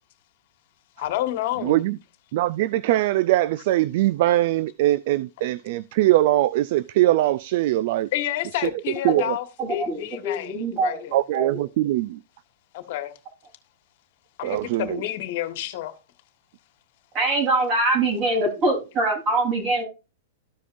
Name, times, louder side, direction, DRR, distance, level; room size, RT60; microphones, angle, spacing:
voice 1, 1.0-1.8 8.1-11.2 12.7-13.1 14.4-15.9, left 13 dB, 55° left, 1.4 m, -29 dB
voice 2, 1.6-2.0 2.3-8.1 8.6-8.7 9.0-9.3 11.1-12.2 14.4-15.0, right 15 dB, 55° right, 0.3 m, -22 dB
voice 3, 9.6-11.0 11.3-11.6 17.1-19.8, right 2 dB, 35° right, 3.6 m, -23 dB
13.5 x 5.0 x 2.6 m
hypercardioid pair, 130°, 0 cm